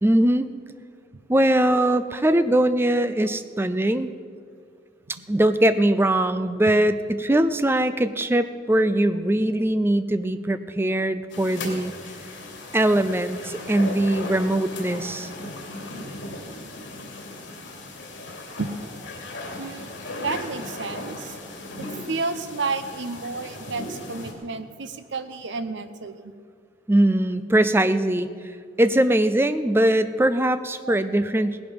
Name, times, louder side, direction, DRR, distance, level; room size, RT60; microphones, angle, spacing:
voice 1, 0.0-0.5 1.3-4.1 5.3-11.9 12.7-15.3 26.9-28.3 28.8-31.6, right 1 dB, 10° right, 12 dB, 0.4 m, -21 dB
voice 2, 2.9-3.3 5.1-5.4 8.7-8.8 18.3-18.7 19.6-21.4 21.8-26.3 30.8-30.9, right 4 dB, 75° right, 10 dB, 0.9 m, -32 dB
sound 1, 11.3-24.3, left 2 dB, 80° left, 2.8 m, -37 dB
18.0 x 11.0 x 5.3 m, 2.1 s
head